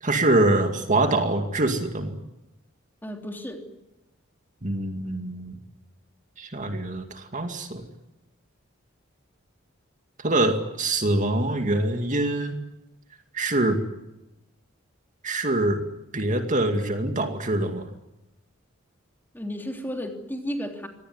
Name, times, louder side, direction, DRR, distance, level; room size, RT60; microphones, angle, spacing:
voice 1, 0.0-2.2 4.6-5.6 6.4-7.8 10.2-12.6 13.3-13.8 15.2-15.8 16.1-17.9, right 2 dB, 40° right, 5 dB, 2.3 m, -24 dB
voice 2, 3.0-3.6 19.3-20.9, equal, 10° left, 3 dB, 3.3 m, -33 dB
25.5 x 18.5 x 9.7 m, 0.93 s
head